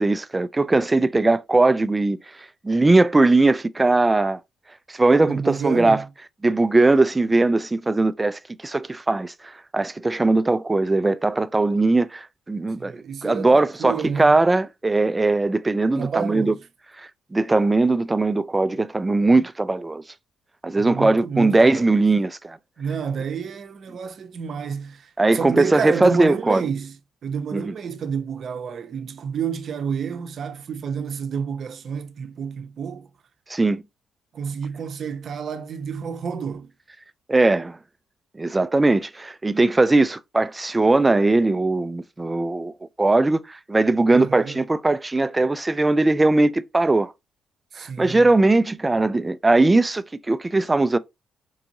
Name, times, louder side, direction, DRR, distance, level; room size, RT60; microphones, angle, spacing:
voice 1, 0.0-2.2 2.6-4.4 4.9-6.0 6.4-16.5 17.0-20.0 20.6-22.6 25.2-26.6 27.5-27.7 33.5-33.8 37.3-37.8 38.4-47.1 47.8-51.0, right 2 dB, 20° right, 0.3 m, -20 dB
voice 2, 5.2-6.1 12.8-14.3 16.0-16.6 20.8-22.0 22.8-27.0 27.2-33.1 34.3-36.7 44.1-44.6 47.7-48.3, right 6 dB, 55° right, 0.6 m, -30 dB
4.6 x 2.6 x 2.9 m
cardioid pair, 90°, 0 cm